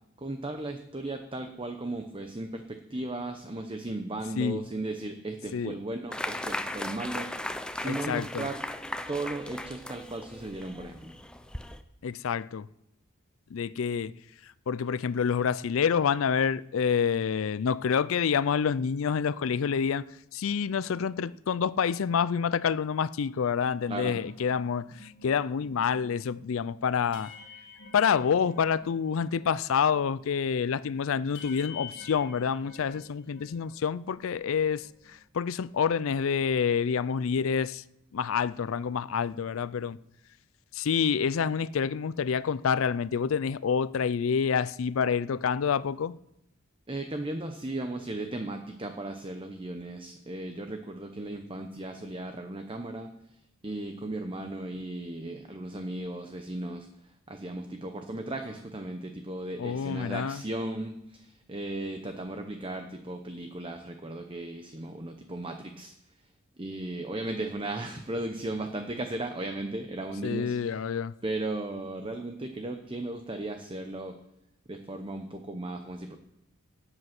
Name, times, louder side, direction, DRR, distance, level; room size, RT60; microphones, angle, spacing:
voice 1, 0.2-7.3 7.8-8.6 9.1-11.1 23.9-24.2 46.9-53.1 53.6-65.9 66.6-70.6 71.2-74.2 74.7-76.2, right 2 dB, 25° right, 0.8 m, -36 dB
sound 1, 6.1-11.8, left 1 dB, 5° left, 0.6 m, -37 dB
voice 2, 7.9-8.5 12.0-12.7 13.5-14.1 14.4-20.1 20.3-27.3 27.9-37.8 38.1-40.0 40.7-46.2 59.6-60.4 70.2-71.1, left 6 dB, 70° left, 0.4 m, -28 dB
sound 2, 24.1-29.6 29.8-33.7 34.0-35.2, left 5 dB, 55° left, 2.0 m, -50 dB
17.5 x 7.9 x 6.0 m
head